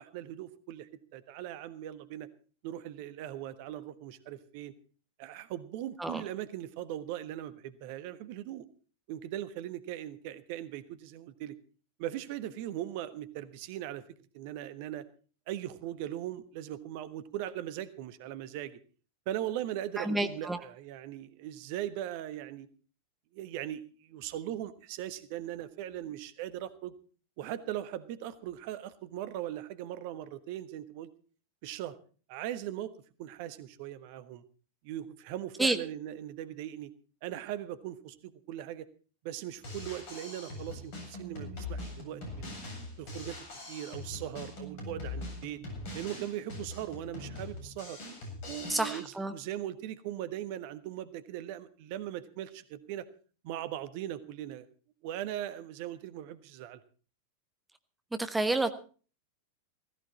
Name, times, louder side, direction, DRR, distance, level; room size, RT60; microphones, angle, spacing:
voice 1, 0.0-2.3 2.6-4.7 5.2-8.6 9.1-11.5 12.0-14.0 14.3-15.0 15.5-18.8 19.3-22.7 23.3-26.9 27.4-31.1 31.6-31.9 32.3-32.9 33.2-34.4 34.8-36.9 37.2-38.9 39.2-42.5 43.0-45.6 45.9-48.0 48.4-53.1 53.4-54.7 55.0-56.8, right 12 dB, 45° right, 13 dB, 1.3 m, -39 dB
voice 2, 20.0-20.6 35.6-35.8 48.7-49.3 58.2-58.7, right 2 dB, 5° right, 9 dB, 1.2 m, -29 dB
Drum kit, 39.5-49.0, left 2 dB, 45° left, 7.7 m, -42 dB
16.5 x 16.0 x 4.3 m, 0.39 s
figure-of-eight pair, 90°, 0 cm